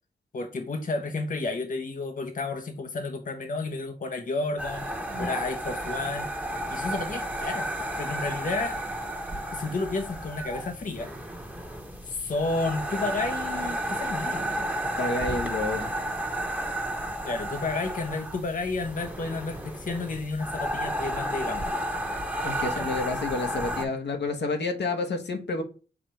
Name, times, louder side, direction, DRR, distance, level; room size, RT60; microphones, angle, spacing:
voice 1, 0.3-4.9 5.2-6.3 6.7-7.7 8.0-8.8 9.5-11.1 12.0-14.7 17.2-21.7 22.8-22.9 23.9-24.0, left 3 dB, 45° left, 0.7 m, -31 dB
sound 1, 4.6-23.9, right 1 dB, 10° right, 1.1 m, -32 dB
voice 2, 15.0-15.9 22.4-25.6, left 3 dB, 70° left, 1.0 m, -29 dB
4.9 x 2.5 x 4.2 m
cardioid pair, 45°, 18 cm